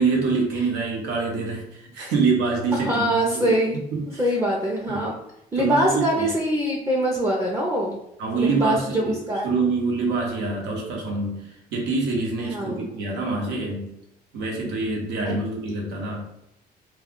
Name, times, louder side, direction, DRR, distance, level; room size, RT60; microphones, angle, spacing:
voice 1, 0.0-3.5 3.9-4.2 4.9-5.1 5.6-6.3 8.2-11.4 11.7-13.9 14.3-16.2, right 3 dB, 85° right, -1 dB, 1.0 m, -25 dB
voice 2, 2.7-3.8 4.2-5.1 5.5-8.0 8.3-9.5 12.4-12.9, right 1 dB, 15° right, -2 dB, 0.5 m, -23 dB
2.3 x 2.3 x 3.6 m, 0.81 s
cardioid pair, 110°, 17 cm